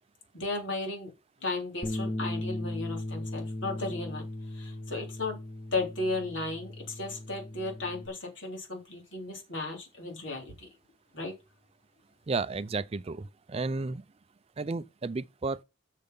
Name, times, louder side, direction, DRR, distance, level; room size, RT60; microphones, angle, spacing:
voice 1, 0.3-1.1 1.4-4.3 4.5-5.4 5.7-10.7 11.1-11.3, left 2 dB, 70° left, 3.5 m, -35 dB
Bass guitar, 1.8-8.1, left 1 dB, 20° left, 1.1 m, -37 dB
voice 2, 12.3-14.0 14.6-15.6, right 3 dB, 30° right, 0.4 m, -33 dB
6.8 x 6.6 x 5.4 m
head